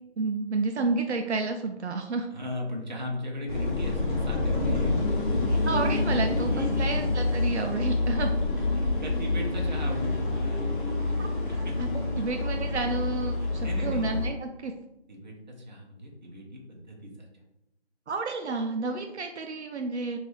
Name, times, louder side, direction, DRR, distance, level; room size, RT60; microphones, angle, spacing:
voice 1, 0.2-2.3 5.4-8.8 11.0-11.9 12.1-14.7 18.1-20.2, right 3 dB, 75° right, 4 dB, 0.5 m, -31 dB
voice 2, 2.3-5.0 5.3-5.6 6.4-6.9 8.7-10.7 11.1-11.8 13.4-14.1 15.1-17.3, left 1 dB, 40° right, -1 dB, 0.9 m, -38 dB
sound 1, 3.5-14.3, left 2 dB, 45° left, 0.8 m, -27 dB
3.9 x 2.6 x 3.1 m, 0.87 s
figure-of-eight pair, 165°, 33 cm